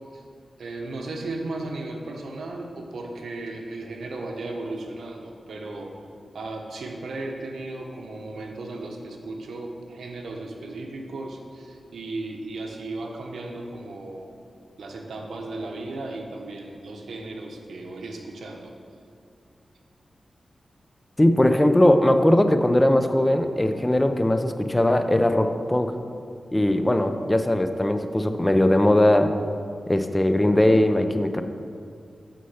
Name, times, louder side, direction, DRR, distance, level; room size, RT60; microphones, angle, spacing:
voice 1, 0.6-5.9 6.3-14.3 14.8-18.7, right 2 dB, 90° right, 2 dB, 1.0 m, -35 dB
voice 2, 21.2-25.9 26.5-29.4 29.9-31.4, left 1 dB, 15° left, 8 dB, 0.5 m, -20 dB
6.8 x 6.4 x 5.6 m, 2.3 s
wide cardioid pair, 75°, 0 cm